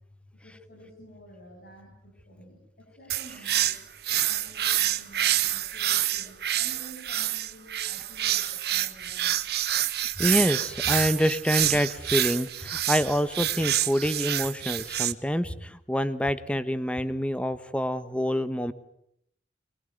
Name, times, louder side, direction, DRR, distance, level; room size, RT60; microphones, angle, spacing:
voice 1, 0.4-3.8 4.1-9.4, right 1 dB, 60° left, -1 dB, 7.3 m, -50 dB
sound 1, 3.1-15.1, right 13 dB, 60° right, 1.1 m, -27 dB
voice 2, 10.2-18.7, equal, 5° left, 13 dB, 1.2 m, -26 dB
23.5 x 22.5 x 9.4 m, 0.74 s
head